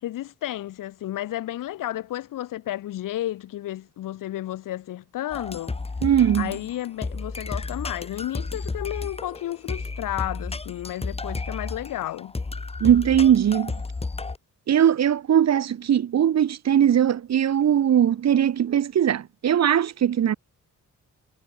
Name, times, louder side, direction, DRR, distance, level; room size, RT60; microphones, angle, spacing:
voice 1, 0.0-5.8 6.3-12.3, left 14 dB, 85° left, 1.4 m, -32 dB
sound 1, 5.3-14.4, left 3 dB, 20° left, 3.1 m, -32 dB
voice 2, 6.0-6.5 12.8-13.7 14.7-20.3, right 9 dB, 55° right, 2.3 m, -20 dB
cardioid pair, 145°, 32 cm